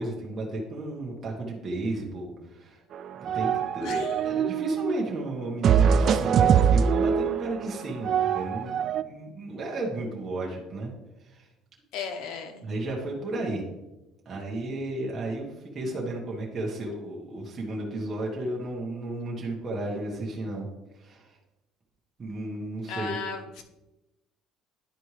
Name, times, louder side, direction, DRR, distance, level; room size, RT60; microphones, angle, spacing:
voice 1, 0.0-2.8 3.2-10.9 11.2-11.5 12.6-13.6 14.2-20.7 20.9-21.4 22.2-23.2, right 1 dB, 25° right, -3 dB, 1.4 m, -33 dB
sound 1, 2.9-5.1 5.6-9.0, right 7 dB, 45° right, 0.3 m, -23 dB
voice 2, 3.8-4.2 11.9-12.6 22.9-23.6, left 5 dB, 70° left, 5 dB, 0.9 m, -35 dB
10.5 x 4.4 x 3.2 m, 1.0 s
cardioid pair, 145°, 0 cm